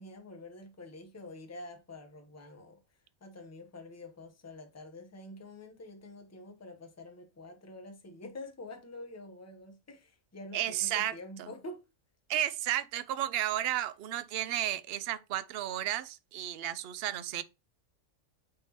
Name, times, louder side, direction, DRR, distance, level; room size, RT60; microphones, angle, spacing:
voice 1, 0.0-2.8 3.2-11.8, left 2 dB, 15° left, 0.7 m, -47 dB
voice 2, 10.5-11.1 11.4-11.5 12.3-17.4, right 12 dB, 65° right, 0.7 m, -33 dB
8.9 x 3.8 x 2.9 m
omnidirectional pair, 1.3 m